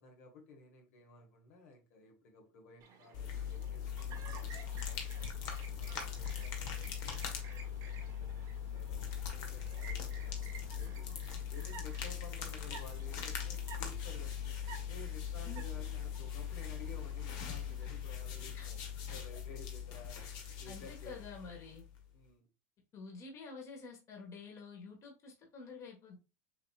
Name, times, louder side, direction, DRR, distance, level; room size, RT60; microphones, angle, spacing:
voice 1, 0.0-14.6 14.9-18.8 19.1-20.3 20.6-21.3 22.1-22.5, left 3 dB, 70° left, 1.9 m, -55 dB
Chirp tweet, 2.8-17.9, right 5 dB, 45° right, 1.6 m, -55 dB
sound 1, 3.1-22.0, left 8 dB, 55° left, 1.4 m, -41 dB
voice 2, 20.6-21.8 22.9-26.2, left 4 dB, 35° left, 1.6 m, -49 dB
6.7 x 2.9 x 2.5 m
hypercardioid pair, 110°, 9 cm